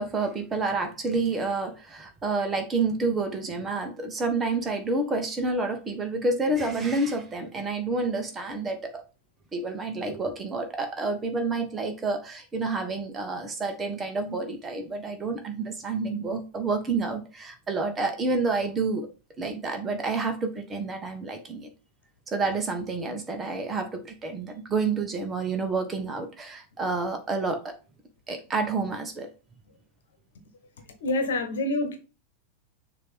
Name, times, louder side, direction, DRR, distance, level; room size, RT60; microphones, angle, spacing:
voice 1, 0.0-9.0 9.5-19.1 19.4-21.7 22.3-27.7 28.3-29.3, right 3 dB, 20° right, 1.4 m, -29 dB
voice 2, 31.0-32.0, left 2 dB, 60° left, 1.3 m, -26 dB
6.7 x 3.1 x 5.2 m
figure-of-eight pair, 90°, 0 cm